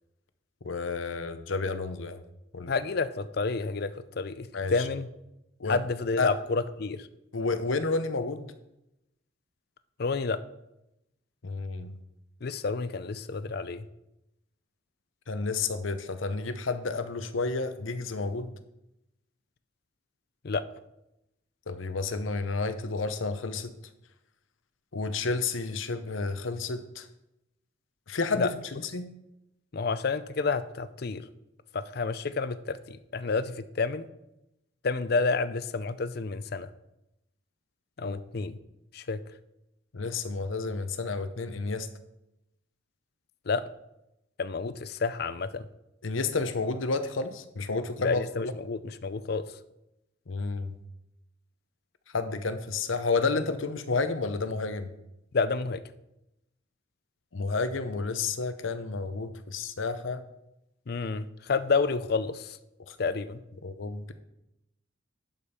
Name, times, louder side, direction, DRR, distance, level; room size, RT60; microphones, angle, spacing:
voice 1, 0.6-2.2 2.5-2.7 4.5-4.7 5.6-5.8 6.2-6.3 7.3-8.5 11.4-11.9 15.3-18.5 21.7-23.7 24.9-27.1 28.1-28.5 28.9-29.1 38.0-38.2 39.9-41.9 46.0-48.5 50.3-50.8 52.1-54.9 57.3-60.2 62.9-63.0 63.6-64.1, left 3 dB, 85° left, 11 dB, 0.8 m, -30 dB
voice 2, 2.7-5.1 5.6-7.1 10.0-10.4 12.4-13.9 20.4-20.6 28.3-28.5 29.7-31.2 31.7-34.1 34.8-36.7 38.0-38.6 38.9-39.2 43.5-43.6 44.4-45.6 48.0-49.4 55.3-55.8 60.9-62.6 63.0-63.4, left 4 dB, 50° left, 14 dB, 0.5 m, -29 dB
11.5 x 5.1 x 5.7 m, 0.88 s
head